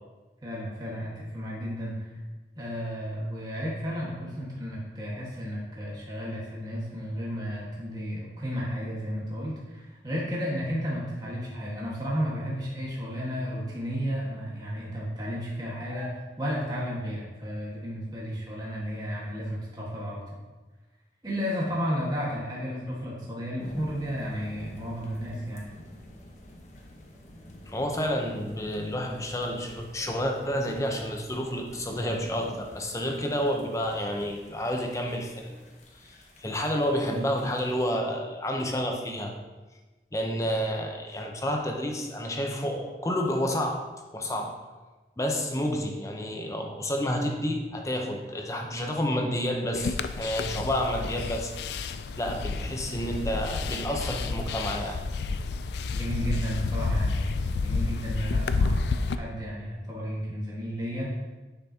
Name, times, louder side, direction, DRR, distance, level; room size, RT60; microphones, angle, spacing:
voice 1, 0.4-2.1 2.5-20.4 21.2-25.7 55.9-61.1, equal, 20° right, -5 dB, 1.5 m, -33 dB
sound 1, 23.6-37.9, left 1 dB, 40° left, 1.0 m, -49 dB
voice 2, 27.7-35.5 36.0-39.3 40.1-43.9 44.1-44.6 45.2-51.5 52.2-55.0, equal, 15° left, 2 dB, 0.7 m, -30 dB
sound 2, 49.7-59.2, left 4 dB, 70° left, 0.4 m, -30 dB
10.0 x 5.9 x 2.8 m, 1.2 s
head